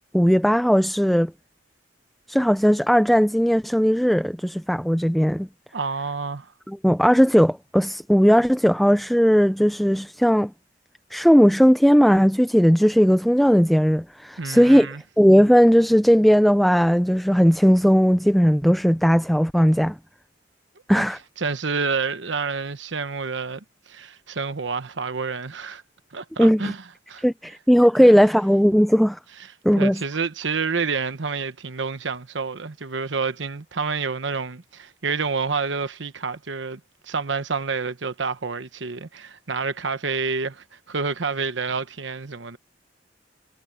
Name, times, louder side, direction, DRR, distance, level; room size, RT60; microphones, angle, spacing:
voice 1, 0.1-1.3 2.3-5.5 6.7-10.5 11.1-20.0 20.9-21.2 26.4-26.7 27.2-29.2 29.6-30.0, equal, ahead, 0.4 m, -17 dB
voice 2, 5.7-6.5 14.4-15.0 21.0-21.1 21.4-25.8 26.1-26.8 27.1-27.2 28.0-28.2 29.7-42.6, right 4 dB, 80° right, 1.0 m, -28 dB
head